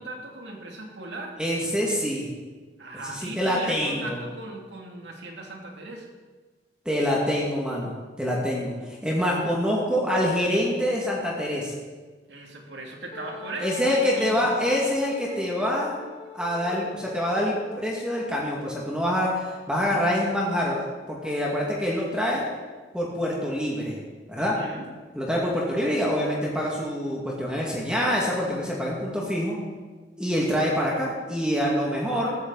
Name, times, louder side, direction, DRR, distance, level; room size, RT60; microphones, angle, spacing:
voice 1, 0.0-1.4 2.8-6.1 12.3-14.5 24.3-24.9, right 2 dB, 80° right, 1 dB, 2.7 m, -38 dB
voice 2, 1.4-2.3 3.1-4.1 6.9-11.7 13.6-16.0 16.3-22.4 22.9-24.0 24.3-24.6 25.1-29.6 30.2-32.4, equal, 5° right, -4 dB, 2.2 m, -26 dB
Wind instrument woodwind instrument, 13.1-18.7, left 3 dB, 40° left, 2.5 m, -43 dB
15.0 x 14.5 x 4.1 m, 1.4 s
head